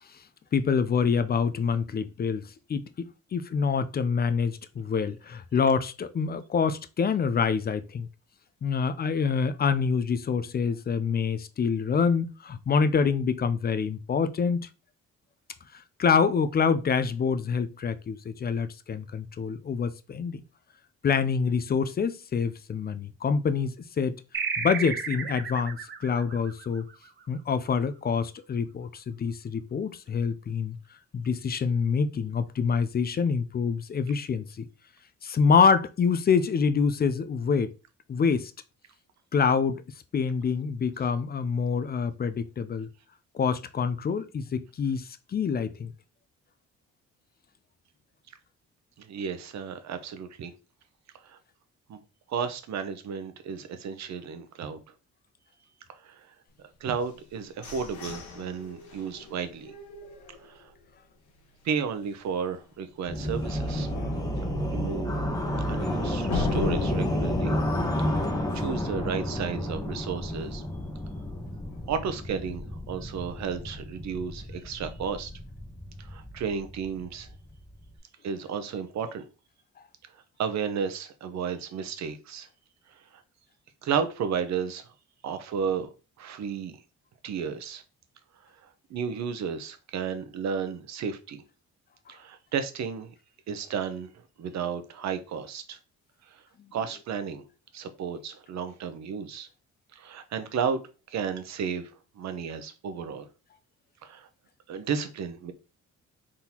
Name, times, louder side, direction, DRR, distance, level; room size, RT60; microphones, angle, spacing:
voice 1, 0.5-8.1 8.6-14.7 15.7-20.4 21.0-24.2 24.6-26.8 27.3-30.8 31.1-34.6 35.2-37.7 38.1-38.5 39.3-39.8 40.1-42.9 43.3-45.9, left 6 dB, 30° left, 0.4 m, -26 dB
sound 1, 24.3-27.4, right 5 dB, 40° right, 0.8 m, -33 dB
voice 2, 49.0-50.5 51.2-51.4 51.9-52.0 52.3-54.8 56.0-56.3 56.8-59.7 60.4-60.7 61.6-63.9 64.7-65.1 65.7-67.6 68.5-70.6 71.9-75.3 76.0-77.3 78.2-79.3 80.4-82.5 83.8-84.9 85.2-85.9 86.2-86.8 87.2-87.8 88.9-91.4 92.1-93.1 93.5-94.1 94.4-95.8 96.7-97.4 97.7-99.5 100.0-100.8 101.1-101.9 102.2-103.3 104.0-104.3 104.7-105.5, right 6 dB, 65° right, 0.8 m, -33 dB
sound 2, 57.0-60.9 61.3-61.4 61.8-62.2 62.6-62.7 63.2-63.3 66.3-69.0, left 4 dB, 75° left, 1.1 m, -37 dB
sound 3, 63.1-77.9, left 1 dB, 10° left, 1.0 m, -31 dB
4.0 x 3.7 x 2.9 m
cardioid pair, 90°, 30 cm